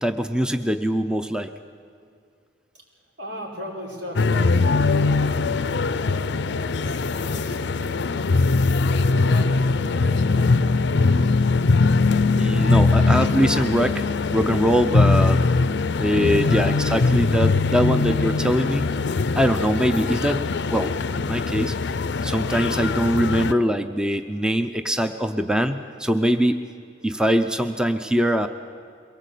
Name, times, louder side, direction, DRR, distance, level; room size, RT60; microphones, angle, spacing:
voice 1, 0.0-1.5 12.3-14.0 14.3-15.5 16.0-19.0 19.3-21.7 22.2-26.6 27.0-28.5, equal, 5° right, 8 dB, 0.6 m, -22 dB
voice 2, 3.2-5.6 5.9-8.4 8.8-11.4, left 1 dB, 80° right, -2 dB, 5.3 m, -38 dB
sound 1, 4.2-23.5, left 3 dB, 65° left, 0.5 m, -21 dB
22.5 x 18.0 x 8.3 m, 2.3 s
head